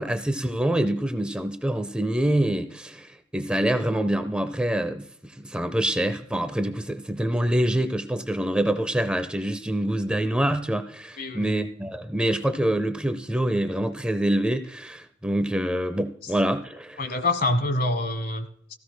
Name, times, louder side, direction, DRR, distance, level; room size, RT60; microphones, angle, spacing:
voice 1, 0.0-17.0, right 1 dB, 5° right, 10 dB, 0.5 m, -26 dB
voice 2, 11.2-11.5 17.0-18.7, left 2 dB, 50° left, 10 dB, 1.4 m, -26 dB
17.5 x 15.0 x 2.2 m, 0.66 s
head